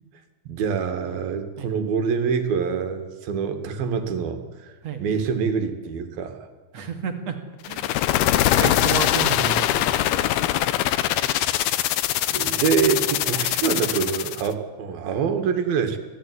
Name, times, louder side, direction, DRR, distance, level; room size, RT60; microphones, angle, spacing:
voice 1, 0.5-4.4 5.0-6.4 12.3-16.0, right 6 dB, 70° right, 7 dB, 3.7 m, -25 dB
voice 2, 6.7-7.4 7.7-7.9 8.3-10.1, right 6 dB, 50° right, 6 dB, 2.9 m, -31 dB
sound 1, 7.6-14.5, left 13 dB, 80° left, 2.8 m, -22 dB
25.5 x 17.0 x 9.9 m, 1.4 s
omnidirectional pair, 4.4 m